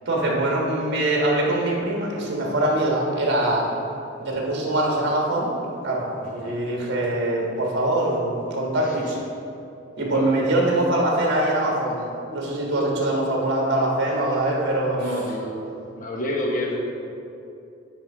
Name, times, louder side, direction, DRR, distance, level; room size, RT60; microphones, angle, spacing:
voice 1, 0.0-3.7 4.2-5.5 5.8-9.0 10.0-12.0 12.3-15.2, right 1 dB, 60° right, -2 dB, 1.4 m, -23 dB
voice 2, 6.2-6.6 8.8-9.1 10.1-10.3 12.7-12.9 14.9-15.6 15.9-16.8, left 1 dB, 45° left, -1 dB, 1.1 m, -30 dB
8.9 x 3.5 x 5.4 m, 2.7 s
head